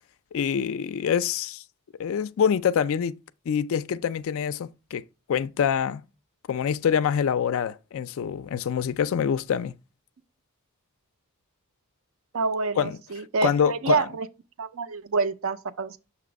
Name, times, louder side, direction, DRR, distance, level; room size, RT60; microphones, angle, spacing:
voice 1, 0.3-1.6 2.0-3.1 3.5-6.0 6.5-9.7 12.8-13.0 13.4-14.1, left 7 dB, 60° left, 0.3 m, -25 dB
voice 2, 12.3-14.3 14.6-16.0, right 4 dB, 65° right, 0.5 m, -27 dB
6.8 x 2.9 x 5.1 m
head